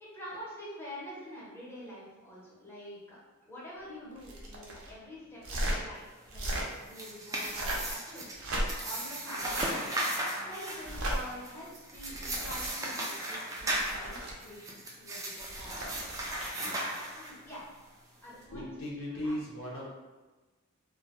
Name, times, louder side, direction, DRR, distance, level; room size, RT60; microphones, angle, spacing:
voice 1, 0.1-8.3 8.8-10.1 10.5-16.0 16.9-17.6 18.2-18.7 19.1-19.4, equal, 10° left, -7 dB, 0.7 m, -46 dB
sound 1, 4.2-4.9 5.4-5.8 6.3-6.7 7.4-7.9 8.3-8.9 9.4-9.7 10.8-11.2 12.0-12.7 13.6-14.3 15.4-16.6 18.4-18.6, right 1 dB, 80° right, 0.6 m, -36 dB
sound 2, 6.7-17.6, right 1 dB, 15° right, 0.3 m, -36 dB
voice 2, 18.5-19.9, left 1 dB, 70° left, -5 dB, 0.7 m, -37 dB
2.3 x 2.2 x 2.9 m, 1.2 s
head